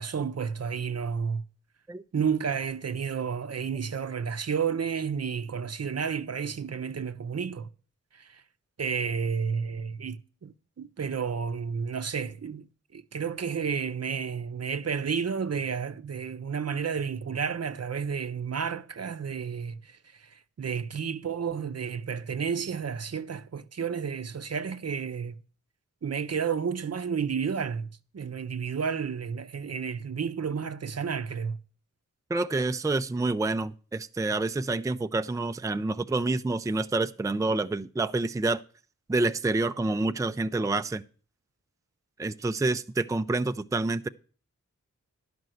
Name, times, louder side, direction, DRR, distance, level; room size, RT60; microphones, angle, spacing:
voice 1, 0.0-1.4 2.1-7.7 8.1-8.4 8.8-12.7 12.9-25.4 26.0-27.9 28.1-31.6, right 6 dB, 55° right, 0.7 m, -31 dB
voice 2, 32.3-38.6 39.1-41.0 42.2-44.1, right 2 dB, 10° right, 0.4 m, -28 dB
11.0 x 5.2 x 7.7 m
cardioid pair, 50°, 30 cm